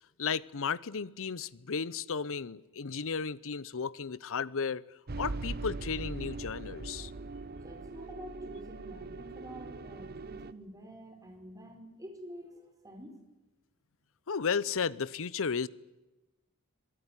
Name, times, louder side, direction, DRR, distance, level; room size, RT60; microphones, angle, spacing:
voice 1, 0.2-4.8 5.2-7.1 14.3-15.7, left 6 dB, 65° left, 0.8 m, -34 dB
sound 1, 5.1-10.5, right 3 dB, 45° right, 0.8 m, -41 dB
voice 2, 7.6-13.2, equal, 15° right, 4.5 m, -48 dB
25.5 x 18.5 x 9.9 m
head